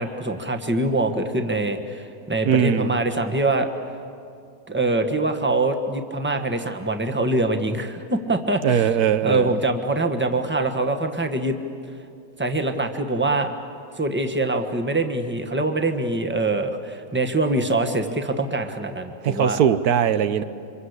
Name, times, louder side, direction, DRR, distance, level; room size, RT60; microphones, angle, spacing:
voice 1, 0.0-3.7 4.7-8.9 9.2-11.6 12.4-13.5 14.0-19.6, right 2 dB, 10° right, 6 dB, 1.4 m, -24 dB
voice 2, 2.4-2.9 8.6-9.6 19.2-20.4, right 8 dB, 85° right, 12 dB, 1.4 m, -20 dB
28.0 x 25.5 x 8.2 m, 2.4 s
omnidirectional pair, 1.6 m